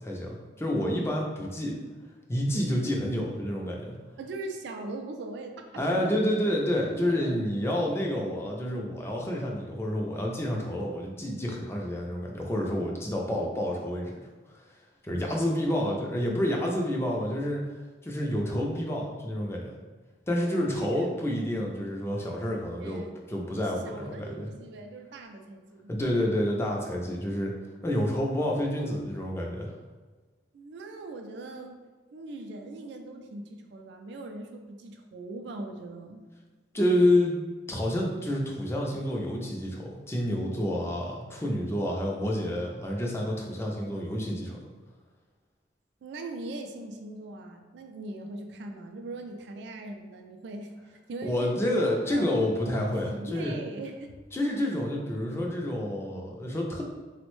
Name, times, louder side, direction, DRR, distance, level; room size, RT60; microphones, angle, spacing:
voice 1, 0.0-1.8 2.3-4.0 5.7-14.2 15.0-17.6 18.0-19.7 20.3-24.5 25.9-27.5 27.8-29.7 36.7-37.4 37.7-44.6 51.2-53.6 54.3-56.8, left 1 dB, 15° left, -1 dB, 0.4 m, -29 dB
voice 2, 4.2-6.2 6.5-7.4 15.2-15.8 20.4-21.1 22.8-23.2 23.8-25.9 28.8-29.0 30.5-31.8 32.1-36.2 46.0-52.3 52.7-54.2 54.5-54.7, right 2 dB, 65° right, 4 dB, 0.3 m, -41 dB
3.4 x 2.1 x 3.0 m, 1.3 s
head